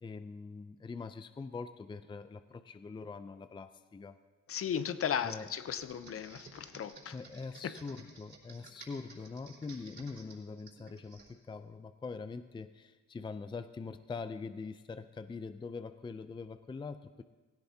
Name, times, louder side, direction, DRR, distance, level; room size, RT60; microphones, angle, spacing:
voice 1, 0.0-4.2 5.2-5.5 7.1-17.2, left 4 dB, 15° left, 11 dB, 0.5 m, -43 dB
voice 2, 4.5-7.1 7.6-7.7, left 8 dB, 50° left, 13 dB, 0.7 m, -36 dB
Computer keyboard, 5.2-11.3, right 3 dB, 40° right, 4.3 m, -55 dB
16.5 x 16.5 x 2.8 m, 1.2 s
cardioid pair, 90°, 30 cm